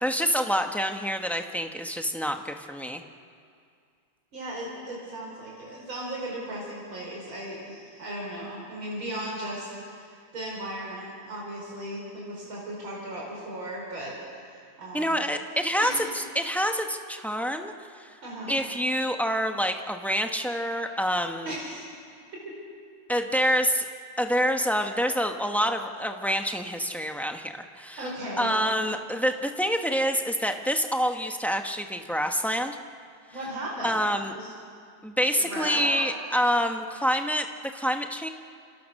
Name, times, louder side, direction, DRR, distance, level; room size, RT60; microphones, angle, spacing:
voice 1, 0.0-3.0 14.9-17.7 18.0-18.1 18.5-21.5 23.1-23.9 24.2-28.0 28.4-32.8 33.8-34.3 35.0-37.5 37.7-38.3, equal, ahead, 4 dB, 0.5 m, -27 dB
voice 2, 4.3-15.1 15.8-16.0 18.2-18.7 21.5-21.9 28.0-28.5 33.3-34.5 35.4-36.1, right 1 dB, 85° right, -3 dB, 6.0 m, -36 dB
29.0 x 27.0 x 6.5 m, 2.3 s
omnidirectional pair, 2.2 m